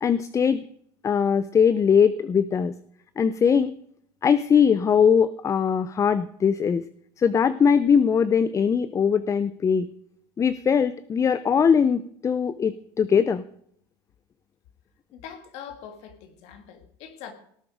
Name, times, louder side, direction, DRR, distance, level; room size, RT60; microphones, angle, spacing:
voice 1, 0.0-0.6 1.0-2.7 3.2-3.7 4.2-6.9 7.2-9.9 10.4-13.4, left 7 dB, 25° left, 16 dB, 0.5 m, -21 dB
voice 2, 15.1-17.3, left 8 dB, 70° left, 8 dB, 2.1 m, -42 dB
18.5 x 7.7 x 4.9 m, 0.67 s
supercardioid pair, 110°, 12 cm